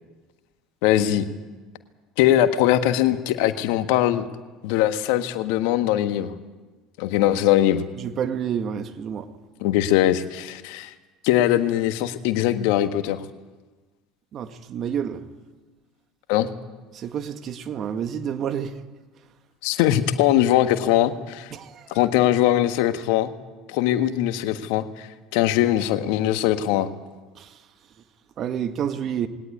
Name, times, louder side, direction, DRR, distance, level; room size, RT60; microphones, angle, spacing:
voice 1, 0.8-1.2 2.2-4.3 4.6-6.3 7.0-7.8 9.6-10.9 11.2-13.2 16.3-16.5 19.6-21.5 21.9-23.3 23.7-26.9, left 12 dB, 70° left, 1.5 m, -21 dB
voice 2, 8.0-9.3 14.3-15.2 16.9-18.7 21.5-21.7 27.4-27.5 28.4-29.3, right 8 dB, 45° right, 1.8 m, -29 dB
20.5 x 18.0 x 9.5 m
hypercardioid pair, 70°, 0 cm